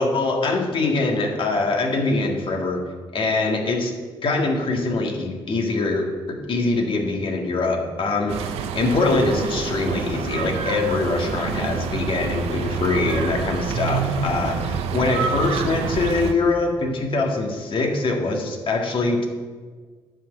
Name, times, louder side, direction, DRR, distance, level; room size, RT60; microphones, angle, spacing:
voice 1, 0.0-2.8 3.1-3.9 4.2-19.3, left 3 dB, 60° left, 2 dB, 1.8 m, -23 dB
sound 1, 8.3-16.3, right 6 dB, 85° right, 0.6 m, -27 dB
10.0 x 4.0 x 7.2 m, 1.5 s
supercardioid pair, 50°, 10 cm